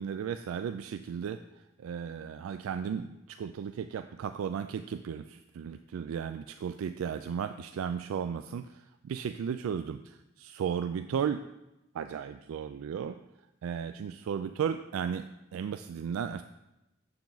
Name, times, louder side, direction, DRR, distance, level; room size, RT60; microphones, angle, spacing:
voice 1, 0.0-1.4 1.8-10.0 10.4-11.4 11.9-13.2 13.6-15.3 15.5-16.4, right 7 dB, 90° right, 9 dB, 0.3 m, -35 dB
7.1 x 6.8 x 3.9 m, 0.94 s
head